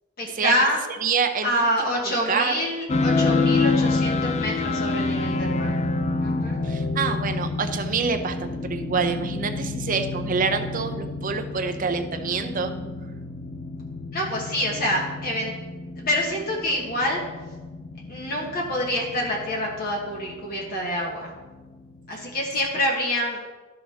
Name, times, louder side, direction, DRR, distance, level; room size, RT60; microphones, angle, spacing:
voice 1, 0.2-0.8 1.4-5.8 6.2-6.6 14.1-15.5 16.0-17.2 18.1-21.3 22.1-23.4, equal, 50° left, -2 dB, 1.4 m, -26 dB
voice 2, 1.0-2.6 6.6-12.7, right 5 dB, 40° right, 7 dB, 0.6 m, -27 dB
sound 1, 2.9-22.8, left 3 dB, 35° left, 0.3 m, -28 dB
13.0 x 5.6 x 2.8 m, 1.3 s
head